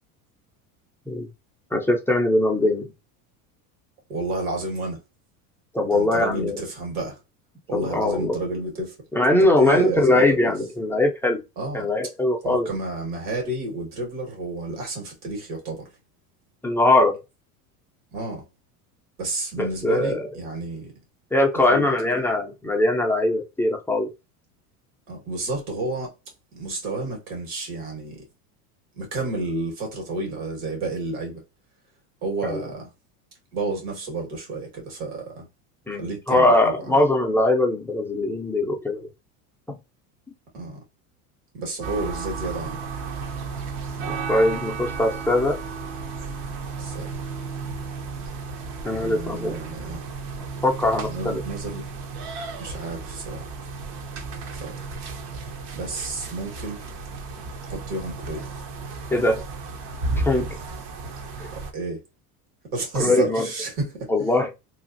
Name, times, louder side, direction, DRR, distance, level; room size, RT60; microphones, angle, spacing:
voice 1, 1.7-2.9 5.7-6.6 7.7-8.4 9.1-11.4 11.7-12.7 16.6-17.2 19.6-20.3 21.3-24.1 32.4-32.6 35.9-39.1 39.7-39.8 44.0-45.6 48.8-49.6 50.6-51.4 59.1-59.4 60.2-60.5 61.4-61.5 63.0-63.5 64.1-64.6, left 1 dB, 5° left, 0.4 m, -21 dB
voice 2, 4.1-5.0 5.9-7.2 7.7-9.0 9.6-10.3 11.6-11.9 12.4-15.9 18.1-18.5 19.2-20.9 21.7-21.9 25.1-26.1 26.5-28.3 29.0-31.4 32.2-32.9 33.5-35.5 36.0-37.0 40.5-40.8 41.5-42.8 46.8-47.1 48.9-50.1 51.1-51.8 52.6-53.5 54.4-54.8 55.7-56.8 57.6-58.5 61.5-62.0 62.7-64.1, right 2 dB, 80° right, 1.9 m, -30 dB
sound 1, 41.8-61.7, right 4 dB, 60° right, 0.9 m, -33 dB
3.1 x 2.4 x 2.6 m
supercardioid pair, 105°, 45 cm